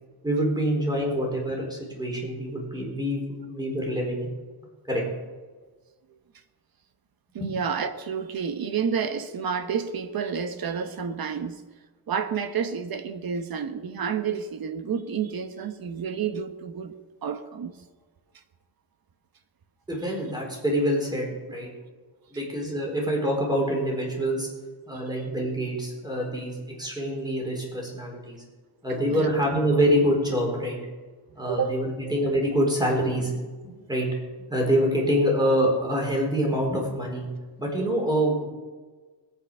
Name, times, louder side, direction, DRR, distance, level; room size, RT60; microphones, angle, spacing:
voice 1, 0.2-3.2 3.5-4.3 4.9-5.0 7.4-7.5 19.9-21.7 22.3-24.5 24.9-28.4 28.8-30.8 31.3-33.3 33.6-34.1 34.5-37.3 37.6-38.5, equal, 10° right, 4.3 m, -26 dB
voice 2, 7.3-11.6 12.1-16.9 17.2-17.7 29.1-29.3 31.5-31.8, right 7 dB, 55° right, 1.2 m, -30 dB
21.0 x 8.9 x 5.6 m
wide cardioid pair, 150°, 43 cm